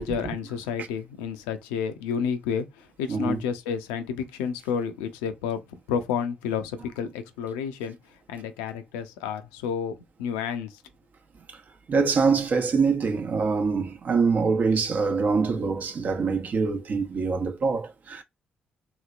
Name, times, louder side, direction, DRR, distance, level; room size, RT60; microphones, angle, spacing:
voice 1, 0.0-8.0 8.3-10.7, left 7 dB, 90° left, 0.5 m, -30 dB
voice 2, 3.1-3.4 11.5-11.6 11.9-18.2, right 4 dB, 55° right, 0.8 m, -24 dB
3.1 x 3.0 x 2.4 m
hypercardioid pair, 50°, 4 cm